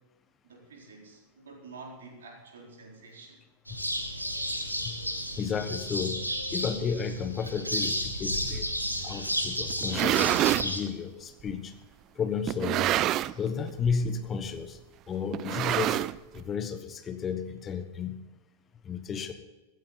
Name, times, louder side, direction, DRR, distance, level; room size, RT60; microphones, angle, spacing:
voice 1, 0.4-3.4, right 3 dB, 65° right, 0 dB, 4.3 m, -48 dB
sound 1, 3.7-10.8, equal, 90° right, 1.8 m, -32 dB
voice 2, 5.4-6.3 6.5-8.7 9.0-11.7 12.1-12.9 13.4-14.8 15.1-16.0 16.3-18.2 18.8-19.3, left 6 dB, 25° left, 9 dB, 1.3 m, -32 dB
sound 2, 9.7-10.7 11.5-11.6 12.5-13.5 13.8-14.1 14.3-14.4 15.3-16.4, right 14 dB, 35° right, 0.4 m, -27 dB
15.5 x 15.0 x 4.1 m, 1.1 s
figure-of-eight pair, 90°, 0 cm